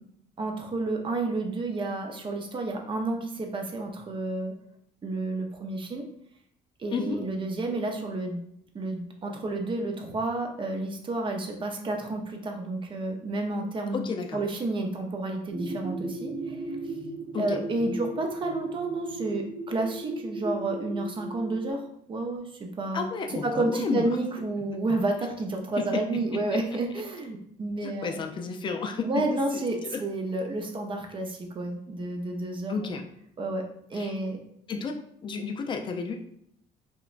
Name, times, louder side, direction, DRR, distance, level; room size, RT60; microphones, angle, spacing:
voice 1, 0.4-4.5 5.0-6.1 6.8-8.4 8.7-17.0 17.4-28.2 29.0-33.0 33.4-34.4, right 2 dB, 30° right, 3 dB, 0.5 m, -31 dB
voice 2, 13.9-14.4 17.3-17.6 22.9-24.1 25.8-26.0 26.3-26.6 27.8-30.0 32.7-33.0 33.9-34.1 34.7-36.2, left 5 dB, 30° left, 4 dB, 0.4 m, -32 dB
sound 1, 15.5-21.7, right 2 dB, 85° right, 1.1 m, -36 dB
2.9 x 2.2 x 2.4 m, 0.71 s
cardioid pair, 110°, 17 cm